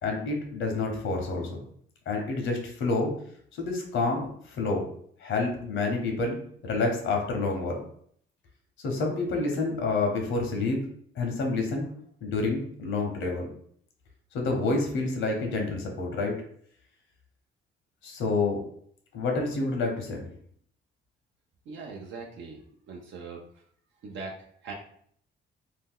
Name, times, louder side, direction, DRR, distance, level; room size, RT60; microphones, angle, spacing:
voice 1, 0.0-1.6 2.1-3.1 3.5-4.8 5.2-6.4 6.6-7.7 8.8-10.8 11.2-11.9 12.2-13.5 14.3-16.4 18.0-18.6 19.1-20.3, left 3 dB, 80° left, 2 dB, 0.9 m, -28 dB
voice 2, 21.7-22.6 22.9-23.5 24.0-24.7, right 4 dB, 70° right, 0 dB, 0.6 m, -40 dB
2.7 x 2.2 x 3.6 m, 0.62 s
cardioid pair, 90°, 20 cm